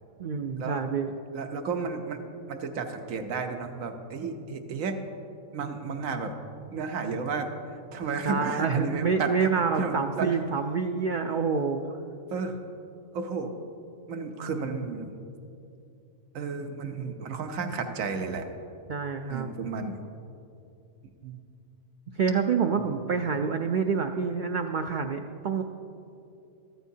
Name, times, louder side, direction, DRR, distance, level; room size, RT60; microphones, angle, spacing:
voice 1, 0.2-1.1 8.2-12.0 18.9-19.5 22.2-25.6, right 5 dB, 65° right, 5 dB, 0.5 m, -27 dB
voice 2, 1.3-2.2 2.5-5.0 5.5-6.3 6.7-7.5 7.9-9.5 9.8-10.3 12.3-12.6 13.1-13.5 14.1-15.1 16.3-18.4 19.3-20.0 21.2-21.4 22.8-22.9, right 4 dB, 85° right, 6 dB, 1.2 m, -32 dB
14.0 x 13.5 x 2.7 m, 2.6 s
omnidirectional pair, 1.4 m